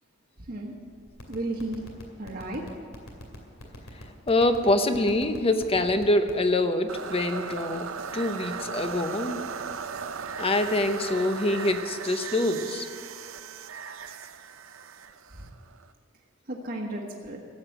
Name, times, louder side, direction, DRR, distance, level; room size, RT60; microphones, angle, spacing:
voice 1, 0.4-0.7 1.3-1.8 2.2-2.6 15.3-15.4 16.5-17.4, right 1 dB, 50° right, -1 dB, 1.4 m, -33 dB
sound 1, 1.1-6.4, left 1 dB, 80° left, 2.4 m, -42 dB
voice 2, 3.9-7.9 8.1-9.4 10.4-12.9, left 1 dB, 30° left, 8 dB, 0.8 m, -25 dB
sound 2, 6.9-15.9, right 6 dB, 70° right, 0.6 m, -37 dB
14.0 x 8.0 x 9.0 m, 2.3 s
head